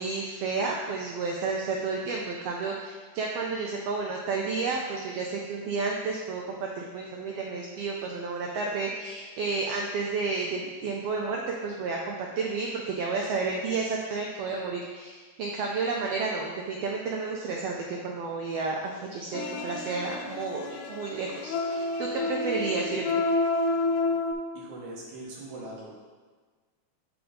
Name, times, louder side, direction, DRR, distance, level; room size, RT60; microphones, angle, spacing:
voice 1, 0.0-23.2, right 4 dB, 90° right, 0 dB, 1.3 m, -31 dB
sound 1, 19.3-24.3, left 3 dB, 85° left, 2.0 m, -29 dB
voice 2, 24.5-26.0, right 2 dB, 70° right, -4 dB, 2.7 m, -41 dB
7.1 x 3.6 x 5.0 m, 1.5 s
omnidirectional pair, 3.5 m